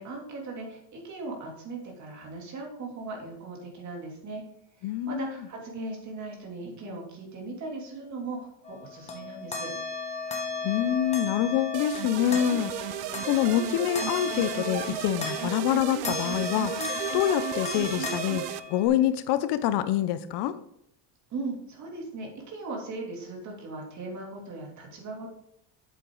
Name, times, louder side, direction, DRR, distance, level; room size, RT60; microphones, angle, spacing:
voice 1, 0.0-4.4 4.8-9.7 21.3-25.3, right 3 dB, 40° right, 0 dB, 2.9 m, -38 dB
voice 2, 4.8-5.3 10.6-12.9 13.3-16.7 17.1-18.4 18.7-20.5, left 11 dB, 60° left, 13 dB, 0.7 m, -26 dB
sound 1, 8.6-15.8 16.0-18.9, left 4 dB, 15° left, 1.4 m, -35 dB
sound 2, 11.7-18.6, right 13 dB, 85° right, 0.7 m, -34 dB
8.1 x 7.8 x 3.8 m, 0.74 s
cardioid pair, 140°, 45 cm